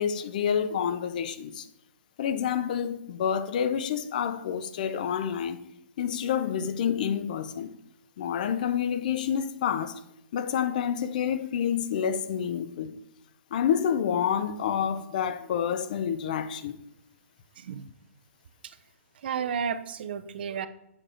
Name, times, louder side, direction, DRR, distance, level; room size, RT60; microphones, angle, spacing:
voice 1, 0.0-1.7 2.2-5.6 6.0-7.7 8.2-10.0 10.3-12.9 13.5-16.8, left 8 dB, 35° left, 0.4 m, -28 dB
voice 2, 17.6-17.9 19.2-20.7, right 7 dB, 45° right, 0.5 m, -32 dB
7.7 x 4.9 x 4.3 m
hypercardioid pair, 170°, 8 cm